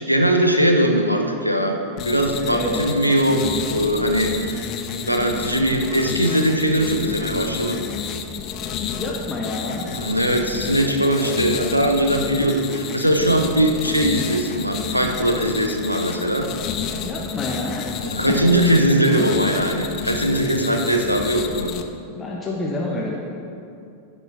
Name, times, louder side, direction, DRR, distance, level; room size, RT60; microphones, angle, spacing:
voice 1, 0.0-4.6 5.1-7.8 9.9-16.5 18.0-21.7, right 1 dB, 90° left, 4 dB, 0.8 m, -20 dB
sound 1, 2.0-21.8, left 7 dB, 40° left, 0.6 m, -30 dB
voice 2, 2.4-2.9 9.0-9.9 17.0-17.9 22.2-23.2, left 2 dB, 15° left, -3 dB, 1.1 m, -28 dB
10.5 x 5.9 x 6.1 m, 2.7 s
figure-of-eight pair, 90°, 0 cm